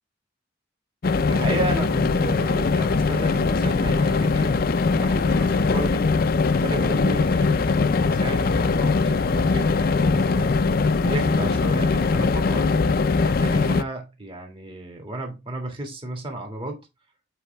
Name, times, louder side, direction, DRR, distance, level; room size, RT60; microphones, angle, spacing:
sound 1, 1.0-13.8, left 4 dB, 50° left, 0.4 m, -21 dB
voice 1, 1.3-12.9 13.2-16.8, right 1 dB, 30° right, 1.9 m, -33 dB
8.2 x 4.5 x 3.3 m
head